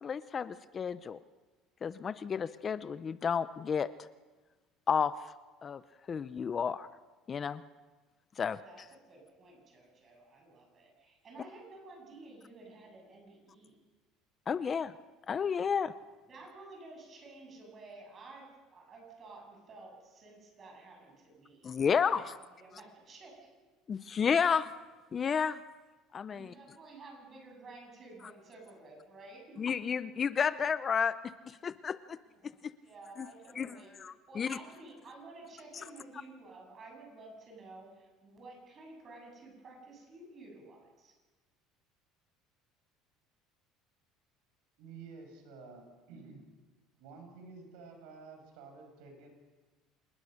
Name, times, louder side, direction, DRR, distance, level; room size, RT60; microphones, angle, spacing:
voice 1, 0.0-1.2 1.8-3.9 4.9-5.3 5.6-5.8 6.1-6.9 7.3-7.6 8.4-8.6 14.5-14.9 15.3-15.9 21.6-22.4 23.9-24.7 25.1-25.6 26.1-26.5 29.6-31.1 31.5-32.2 32.4-32.7 33.2-33.3 33.6-34.6 35.7-35.8, left 6 dB, 30° left, 14 dB, 0.6 m, -31 dB
voice 2, 8.6-13.7 16.3-22.2 22.5-23.5 26.3-29.6 32.3-34.0 34.3-41.1, right 2 dB, 30° right, 2 dB, 7.8 m, -52 dB
voice 3, 44.8-46.5 47.0-49.3, right 4 dB, 75° right, 4 dB, 6.6 m, -51 dB
27.0 x 19.5 x 6.6 m, 1.3 s
cardioid pair, 140°, 0 cm